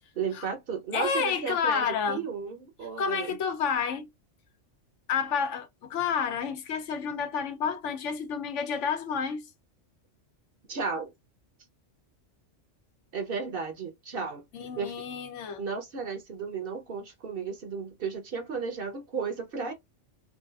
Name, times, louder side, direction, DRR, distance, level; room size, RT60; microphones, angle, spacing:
voice 1, 0.1-3.4 10.7-11.1 13.1-14.9 15.6-19.7, right 5 dB, 55° right, 1.0 m, -34 dB
voice 2, 0.9-2.2 3.0-4.1 5.1-9.5 14.5-15.6, left 6 dB, 75° left, 1.0 m, -30 dB
3.9 x 2.4 x 2.3 m
omnidirectional pair, 1.3 m